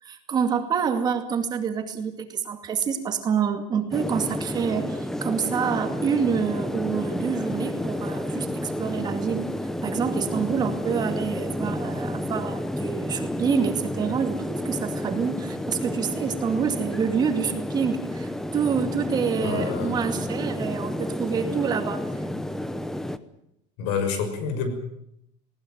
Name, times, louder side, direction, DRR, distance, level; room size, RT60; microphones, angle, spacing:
voice 1, 0.0-9.5 9.8-22.1, right 6 dB, 25° right, 6 dB, 2.3 m, -27 dB
sound 1, 3.9-23.2, left 1 dB, 5° left, 0.9 m, -30 dB
voice 2, 19.4-20.0 23.8-24.7, left 6 dB, 70° left, 8 dB, 6.2 m, -28 dB
20.0 x 19.0 x 9.3 m, 0.77 s
cardioid pair, 165°, 15 cm